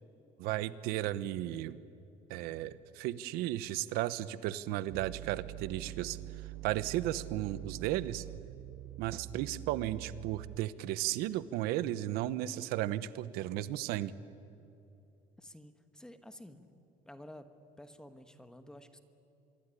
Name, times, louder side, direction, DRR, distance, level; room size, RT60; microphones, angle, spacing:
voice 1, 0.4-1.8 2.3-6.2 6.6-8.2 9.0-14.1, right 14 dB, 85° right, 15 dB, 1.0 m, -34 dB
sound 1, 4.9-10.9, right 17 dB, 60° right, 0.5 m, -45 dB
voice 2, 15.4-16.8 17.0-17.5 17.8-19.0, left 1 dB, 5° left, 9 dB, 1.2 m, -51 dB
25.5 x 22.0 x 10.0 m, 2.9 s
cardioid pair, 180°, 16 cm